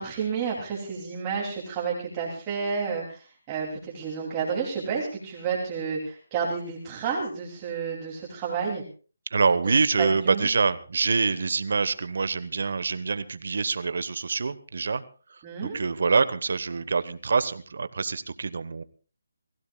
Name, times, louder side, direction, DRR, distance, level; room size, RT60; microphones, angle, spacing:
voice 1, 0.0-8.8 10.0-10.5 15.4-15.8, right 6 dB, 20° right, -3 dB, 2.9 m, -30 dB
voice 2, 9.3-15.0 15.3-18.8, right 4 dB, 60° right, 14 dB, 1.1 m, -25 dB
28.5 x 16.0 x 2.3 m, 0.38 s
figure-of-eight pair, 160°, 0 cm